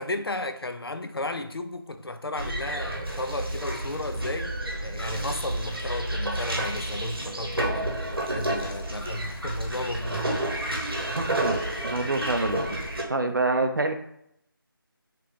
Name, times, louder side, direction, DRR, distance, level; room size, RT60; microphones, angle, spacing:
voice 1, 0.0-7.9 8.3-10.8, left 2 dB, 90° left, 0.4 m, -34 dB
sound 1, 2.4-13.0, right 1 dB, 85° right, 1.0 m, -30 dB
voice 2, 11.2-12.8 13.1-14.0, right 2 dB, 60° right, 0.4 m, -27 dB
3.6 x 2.9 x 3.3 m
figure-of-eight pair, 160°, 12 cm